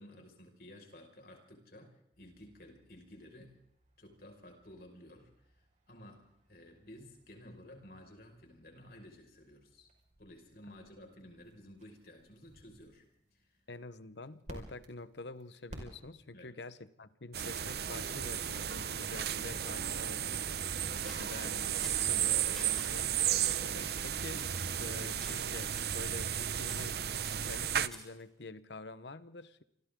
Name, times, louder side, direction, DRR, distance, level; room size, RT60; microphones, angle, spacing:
voice 1, 0.0-3.5 4.0-5.6 5.9-9.9 10.2-13.0 13.3-13.6 16.3-16.5, left 1 dB, 55° left, 3 dB, 5.7 m, -54 dB
sound 1, 2.1-16.5, equal, 40° right, 5.4 m, -57 dB
voice 2, 13.7-24.5 24.8-27.0 27.4-29.6, left 2 dB, 75° left, 14 dB, 1.1 m, -47 dB
sound 2, 17.3-27.9, right 9 dB, 60° right, 0.8 m, -34 dB
sound 3, 21.0-22.9 23.4-23.7 24.3-24.9 25.2-25.5 25.7-26.0 26.6-28.2, equal, 5° left, 7.3 m, -51 dB
28.5 x 24.0 x 3.8 m, 0.76 s
head